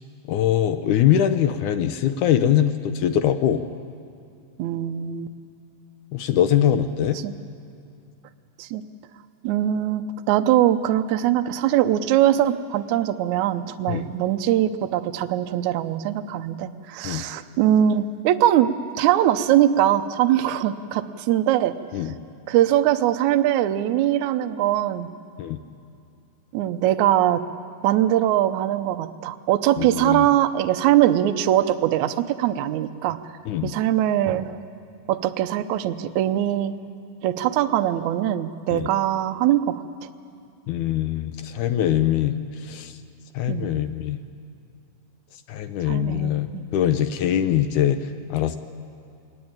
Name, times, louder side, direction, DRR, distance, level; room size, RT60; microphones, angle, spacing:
voice 1, 0.3-3.6 6.1-7.2 13.9-14.0 17.0-17.2 21.9-22.1 25.4-25.6 29.8-30.3 33.5-33.7 38.7-38.9 40.7-43.0 43.3-44.2 45.5-48.6, left 10 dB, 75° left, 9 dB, 1.8 m, -22 dB
voice 2, 4.6-5.3 7.2-7.3 8.6-8.8 9.4-18.7 19.0-22.1 22.5-25.1 26.5-27.4 27.8-33.2 33.6-34.6 35.1-36.7 37.2-39.8 43.5-43.7 45.9-46.6, right 12 dB, 80° right, 8 dB, 1.7 m, -22 dB
21.5 x 20.0 x 8.8 m, 2.5 s
omnidirectional pair, 4.3 m